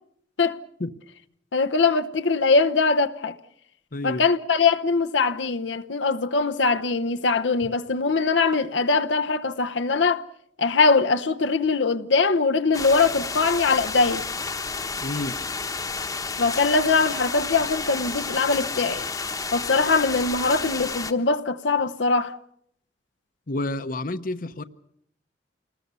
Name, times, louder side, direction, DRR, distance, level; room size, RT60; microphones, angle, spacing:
voice 1, 1.5-3.4 4.0-10.2 10.6-14.2 16.4-19.0 19.5-22.3, left 4 dB, 80° left, 0.9 m, -22 dB
voice 2, 3.9-4.2 15.0-15.4 23.5-24.6, left 2 dB, 50° left, 0.9 m, -29 dB
sound 1, 12.7-21.1, left 4 dB, 20° left, 1.1 m, -31 dB
28.0 x 20.0 x 6.9 m
head